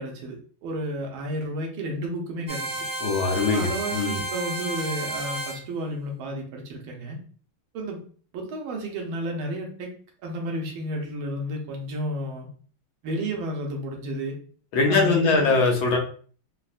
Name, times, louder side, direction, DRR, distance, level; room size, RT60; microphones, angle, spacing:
voice 1, 0.0-2.8 3.4-7.2 7.7-8.0 8.3-9.9 10.2-12.5 13.0-14.3 14.9-15.6, right 1 dB, 80° right, 1 dB, 1.6 m, -31 dB
sound 1, 2.5-5.6, right 2 dB, 45° right, 0.9 m, -32 dB
voice 2, 3.0-4.2 14.7-16.0, left 4 dB, 85° left, 1 dB, 1.6 m, -22 dB
4.2 x 2.1 x 2.4 m, 0.43 s
omnidirectional pair, 2.2 m